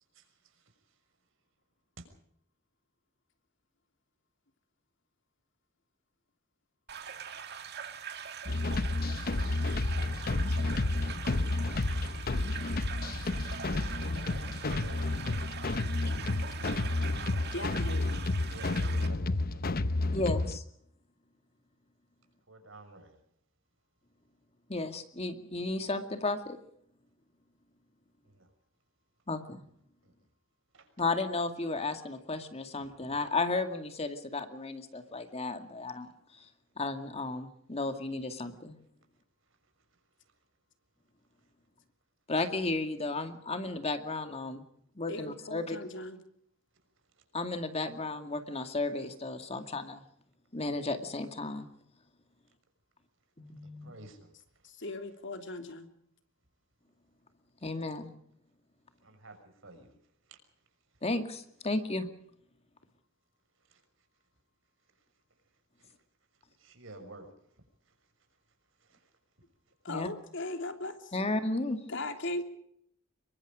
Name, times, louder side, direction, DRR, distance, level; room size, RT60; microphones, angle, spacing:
sound 1, 6.9-19.1, right 7 dB, 55° right, 2.3 m, -43 dB
sound 2, 8.5-20.6, left 2 dB, 50° left, 0.8 m, -31 dB
voice 1, 14.6-15.1 18.5-19.6 19.9-20.0 22.5-23.2 28.3-28.5 30.7-30.9 53.8-54.3 59.0-59.4 59.6-60.0 60.3-60.4 65.8-65.9 66.6-67.3 68.9-69.0, right 2 dB, 70° right, 7 dB, 6.1 m, -50 dB
voice 2, 17.5-18.1 45.1-46.2 54.6-55.9 69.8-71.1 71.9-72.4, left 2 dB, 65° left, 6 dB, 3.1 m, -38 dB
voice 3, 20.1-20.6 24.7-26.6 29.3-29.6 31.0-36.5 36.8-38.8 42.3-44.7 45.0-45.8 47.3-50.0 50.5-51.7 53.4-53.9 57.6-58.1 61.0-62.1 69.9-70.1 71.1-71.8, left 3 dB, 30° left, 7 dB, 2.2 m, -34 dB
27.0 x 23.0 x 5.1 m, 0.69 s
head